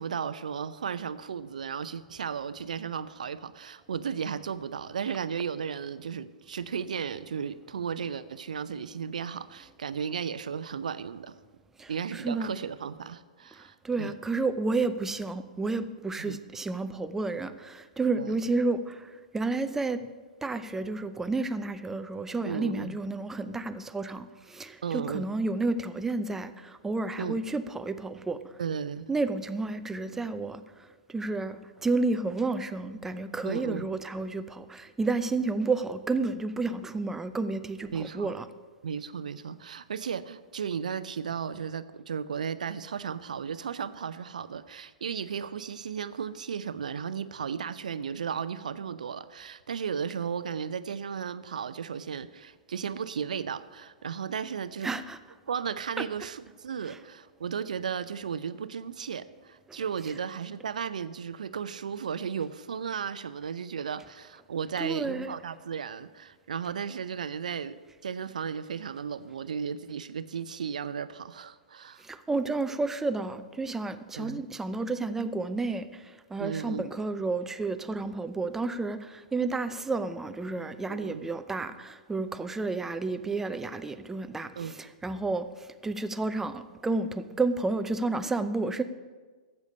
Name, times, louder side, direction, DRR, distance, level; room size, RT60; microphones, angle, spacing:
voice 1, 0.0-11.4 11.9-14.1 16.2-16.4 18.2-18.4 22.4-23.0 24.8-25.3 27.2-27.4 28.6-29.1 33.4-33.9 37.9-38.4 38.8-54.9 55.5-72.0 74.2-74.4 76.4-76.8 80.9-81.3 84.6-84.8, right 7 dB, 70° right, 14 dB, 0.6 m, -35 dB
voice 2, 11.8-12.5 13.8-20.1 20.4-28.4 29.1-30.6 31.1-38.4 54.8-55.2 56.0-56.1 64.8-65.4 72.0-88.8, right 3 dB, 10° right, 11 dB, 0.6 m, -31 dB
13.0 x 8.2 x 5.4 m, 1.4 s
figure-of-eight pair, 110°, 4 cm